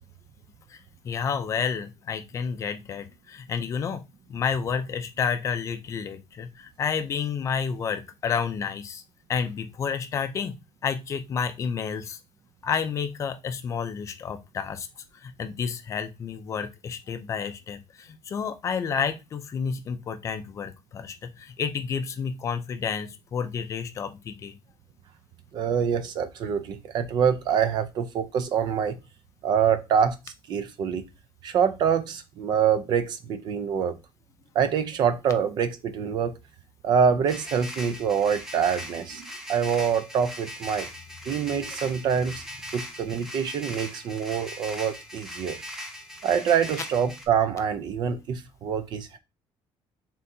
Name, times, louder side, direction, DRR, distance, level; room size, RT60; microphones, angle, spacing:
voice 1, 1.0-4.0 4.3-9.0 9.3-10.5 10.8-12.2 12.6-14.9 15.2-24.6, left 6 dB, 30° left, 0.5 m, -30 dB
voice 2, 25.5-29.0 29.4-30.2 30.5-31.1 31.4-34.0 34.5-36.4 36.8-40.9 41.2-42.4 42.7-45.6 46.2-49.2, right 7 dB, 45° right, 0.5 m, -25 dB
sound 1, 37.3-47.3, equal, 5° right, 0.7 m, -40 dB
4.2 x 3.7 x 2.7 m
cardioid pair, 180°, 10 cm